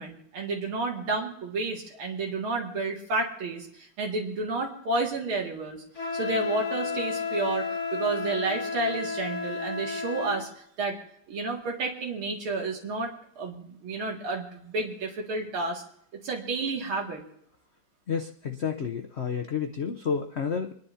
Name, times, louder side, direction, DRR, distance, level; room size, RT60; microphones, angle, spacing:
voice 1, 0.0-3.7 4.0-5.8 6.1-10.5 10.8-11.0 11.3-15.8 16.1-17.2, right 3 dB, 90° right, 0 dB, 3.0 m, -31 dB
Wind instrument woodwind instrument, 6.0-10.4, left 5 dB, 50° left, 2.9 m, -32 dB
voice 2, 18.1-20.7, left 6 dB, 90° left, 5 dB, 0.5 m, -30 dB
27.5 x 10.5 x 2.8 m, 0.71 s
omnidirectional pair, 2.3 m